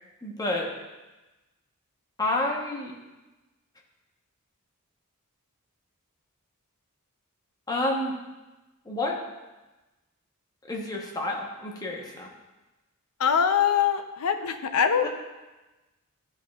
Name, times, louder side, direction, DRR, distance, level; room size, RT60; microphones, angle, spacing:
voice 1, 0.2-0.7 2.2-2.9 7.7-8.2 8.8-9.2 10.7-12.3 15.0-15.1, left 2 dB, 15° left, -1 dB, 0.9 m, -29 dB
voice 2, 13.2-15.1, left 7 dB, 80° left, 8 dB, 0.5 m, -23 dB
11.5 x 5.0 x 2.3 m, 1.1 s
head